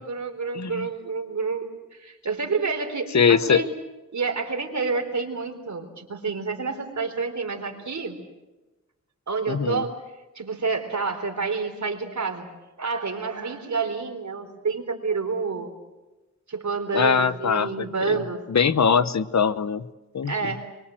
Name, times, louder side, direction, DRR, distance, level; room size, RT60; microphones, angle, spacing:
voice 1, 0.0-1.7 1.9-3.7 4.1-8.2 9.3-9.9 10.4-12.5 12.8-15.7 16.5-18.4 20.2-20.7, right 4 dB, 75° right, 3 dB, 4.1 m, -29 dB
voice 2, 0.5-0.9 3.1-3.6 9.5-9.8 16.9-18.2 18.5-19.9 20.1-20.3, left 6 dB, 70° left, 13 dB, 1.0 m, -22 dB
25.5 x 23.5 x 7.8 m, 1.1 s
wide cardioid pair, 110°, 29 cm